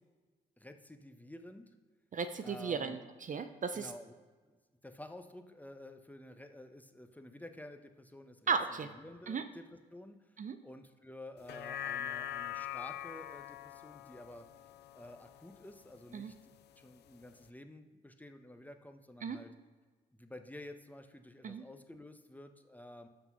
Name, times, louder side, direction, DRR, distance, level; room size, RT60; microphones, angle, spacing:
voice 1, 0.6-1.6 2.4-3.0 3.7-4.1 4.4-8.5 8.9-10.4 10.6-14.5 14.9-19.5 20.1-23.1, left 1 dB, 10° left, 7 dB, 0.8 m, -51 dB
voice 2, 2.1-3.9 8.5-8.9 9.3-9.4 10.4-10.6 16.1-16.3 19.2-19.4 21.4-21.6, right 5 dB, 40° right, 10 dB, 0.5 m, -35 dB
sound 1, 11.4-15.9 16.4-16.5, left 10 dB, 55° left, 0.5 m, -43 dB
6.0 x 5.9 x 5.4 m, 1.4 s
hypercardioid pair, 45°, 21 cm